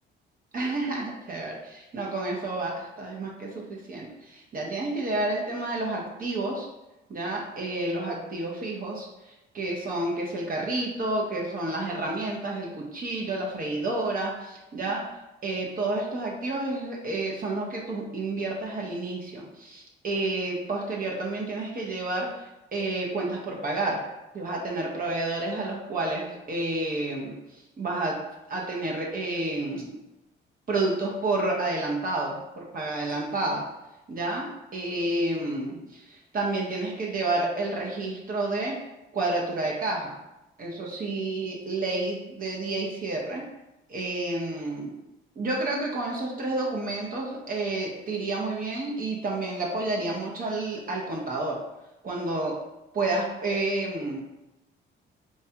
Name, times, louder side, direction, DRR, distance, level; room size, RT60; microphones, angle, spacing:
voice 1, 0.5-6.7 7.1-15.0 15.4-22.4 22.7-24.0 24.3-27.4 27.8-28.2 28.5-30.0 30.7-33.7 34.1-38.8 39.1-40.2 40.6-43.5 43.9-44.9 45.4-51.6 52.0-52.6 52.9-54.2, right 2 dB, 45° right, -2 dB, 0.7 m, -30 dB
4.5 x 2.2 x 2.8 m, 0.95 s
cardioid pair, 90°, 20 cm